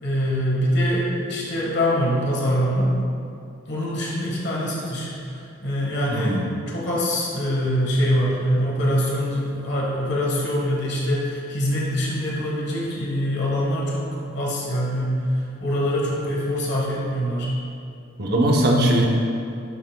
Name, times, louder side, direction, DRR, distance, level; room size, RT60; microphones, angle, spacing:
voice 1, 0.0-2.9 3.7-6.4 6.7-17.5, equal, 60° left, -4 dB, 1.4 m, -24 dB
voice 2, 6.1-6.5 18.2-19.1, right 1 dB, 55° right, 0 dB, 0.8 m, -19 dB
11.0 x 5.6 x 2.3 m, 2.5 s
head